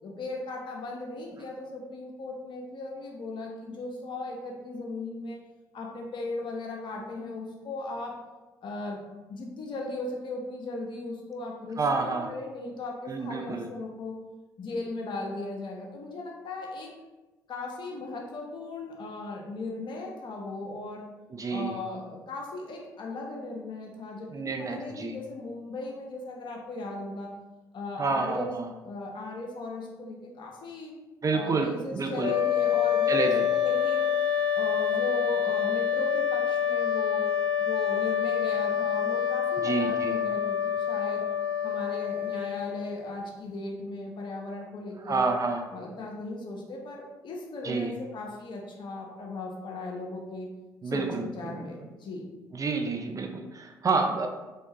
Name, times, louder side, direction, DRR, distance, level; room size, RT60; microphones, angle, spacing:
voice 1, 0.0-5.4 5.7-8.2 8.6-9.0 9.3-14.2 14.6-16.9 17.5-21.1 21.5-27.3 27.7-28.5 28.8-30.9 31.3-34.1 34.5-37.2 37.6-41.3 41.6-45.2 45.7-50.5 50.8-52.3, left 2 dB, 50° left, 0 dB, 0.9 m, -37 dB
voice 2, 11.8-12.3 13.1-13.7 21.3-21.8 24.3-25.2 28.0-28.7 31.2-32.3 33.1-33.5 39.6-40.2 45.0-45.7 47.6-47.9 50.8-51.7 52.5-54.3, right 4 dB, 35° right, 4 dB, 0.5 m, -29 dB
sound 1, 32.2-43.1, left 9 dB, 70° left, 0.5 m, -27 dB
3.7 x 3.2 x 2.9 m, 1.1 s
hypercardioid pair, 50°, 10 cm